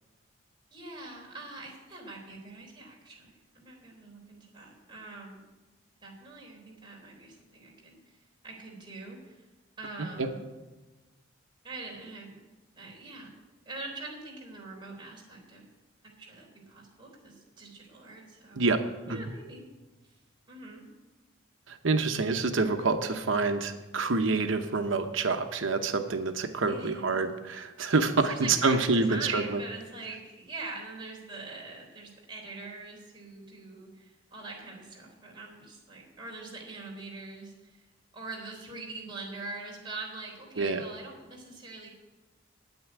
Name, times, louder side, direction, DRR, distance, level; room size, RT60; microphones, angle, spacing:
voice 1, 0.7-5.4 6.0-8.0 8.4-9.4 9.8-10.4 11.6-12.5 12.8-13.3 13.7-15.6 16.0-18.6 19.1-19.7 20.5-20.9 26.7-27.2 28.0-37.8 38.1-41.9, right 3 dB, 25° right, -2 dB, 3.5 m, -43 dB
voice 2, 21.7-29.6 40.6-40.8, right 3 dB, 75° right, 7 dB, 0.9 m, -27 dB
9.4 x 8.9 x 9.5 m, 1.2 s
head